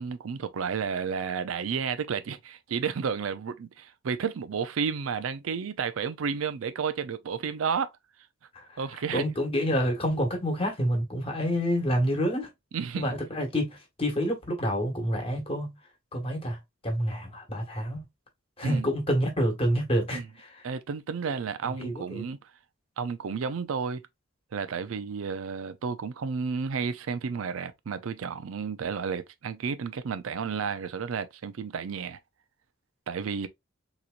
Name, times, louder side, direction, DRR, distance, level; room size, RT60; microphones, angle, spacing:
voice 1, 0.0-7.9 8.8-9.3 12.7-13.1 18.6-18.9 20.1-20.3 20.6-22.5 23.0-24.0 24.5-32.2 33.1-33.5, right 6 dB, 90° right, 0.5 m, -32 dB
voice 2, 9.1-12.5 12.9-15.8 16.1-18.0 18.6-20.6 21.8-22.2, equal, 30° left, 1.3 m, -28 dB
4.0 x 3.0 x 2.4 m
head